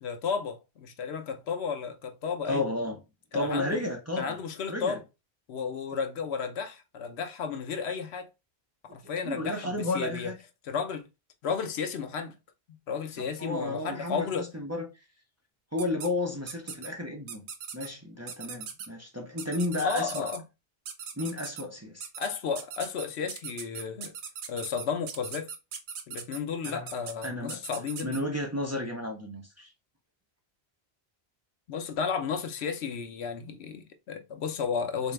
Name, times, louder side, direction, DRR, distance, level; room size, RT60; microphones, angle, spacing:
voice 1, 0.0-2.6 3.3-3.8 4.2-5.0 5.5-8.3 8.9-10.3 10.6-11.1 11.4-12.3 12.9-14.5 19.8-20.4 22.2-24.1 24.5-25.5 26.1-28.2 31.7-35.1, left 6 dB, 75° left, 0.9 m, -33 dB
voice 2, 2.5-3.0 3.3-4.4 4.7-5.0 8.9-9.0 9.2-10.4 13.2-14.9 15.7-17.5 17.7-20.3 21.2-22.1 26.6-26.9 27.2-27.6 28.0-29.7 35.0-35.1, left 2 dB, 15° right, 0.6 m, -32 dB
sound 1, 15.8-16.1 16.5-16.9 17.3-17.9 18.3-18.9 19.4-20.4 20.9-21.6 22.0-22.3 22.5-28.2, right 7 dB, 80° right, 0.9 m, -39 dB
3.8 x 2.7 x 3.1 m
omnidirectional pair, 1.1 m